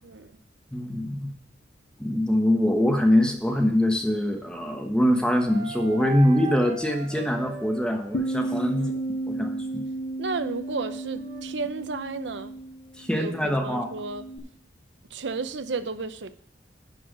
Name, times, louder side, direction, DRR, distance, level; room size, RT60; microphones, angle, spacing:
voice 1, 0.0-0.4 8.7-9.0 10.2-12.5 13.2-14.2 15.1-16.3, right 4 dB, 80° right, 12 dB, 0.7 m, -33 dB
voice 2, 0.7-1.3 2.0-8.9 9.3-9.8 13.0-13.9, left 1 dB, 5° left, 4 dB, 1.2 m, -23 dB
sound 1, 5.5-8.4 10.6-11.4, right 3 dB, 35° right, 3.1 m, -38 dB
Bass guitar, 8.1-14.4, right 2 dB, 65° left, 1.0 m, -33 dB
11.5 x 4.7 x 6.1 m, 0.66 s
head